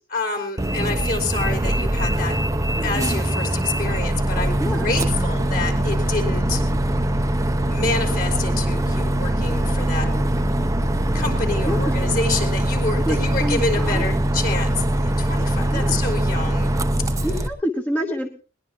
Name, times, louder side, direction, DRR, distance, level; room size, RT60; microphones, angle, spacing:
voice 1, 0.1-2.4 2.8-6.6 7.7-10.1 11.1-16.7, left 3 dB, 50° left, 3 dB, 4.6 m, -28 dB
Bus, 0.6-17.5, right 1 dB, 15° right, 0.8 m, -22 dB
sound 1, 2.7-12.2, equal, 90° left, 3.1 m, -38 dB
voice 2, 11.7-12.0 13.1-14.2 15.7-16.0 17.2-18.3, equal, 10° left, 3 dB, 1.2 m, -27 dB
21.0 x 20.0 x 3.0 m, 0.38 s
head